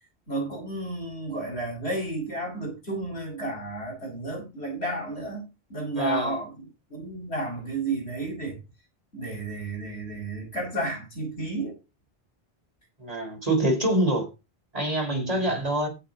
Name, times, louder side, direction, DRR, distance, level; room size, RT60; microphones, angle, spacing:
voice 1, 0.3-6.6 6.9-8.6 9.1-11.7 15.1-15.6, right 2 dB, 85° left, 5.9 m, -32 dB
voice 2, 5.9-6.4 13.0-14.3 14.7-15.9, right 1 dB, 35° right, 4.2 m, -25 dB
15.5 x 6.7 x 4.0 m
omnidirectional pair, 1.1 m